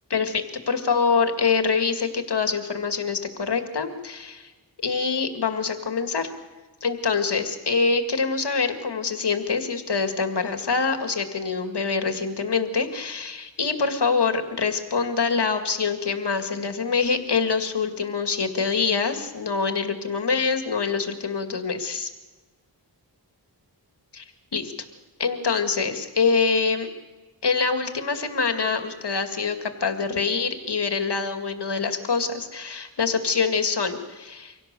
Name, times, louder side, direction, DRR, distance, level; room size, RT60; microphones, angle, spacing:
voice 1, 0.1-4.5 4.8-6.3 6.8-22.1 24.1-24.2 24.5-24.7 25.2-26.9 27.4-34.5, left 5 dB, 70° left, 6 dB, 2.2 m, -25 dB
25.0 x 17.0 x 6.8 m, 1.2 s
wide cardioid pair, 70°, 42 cm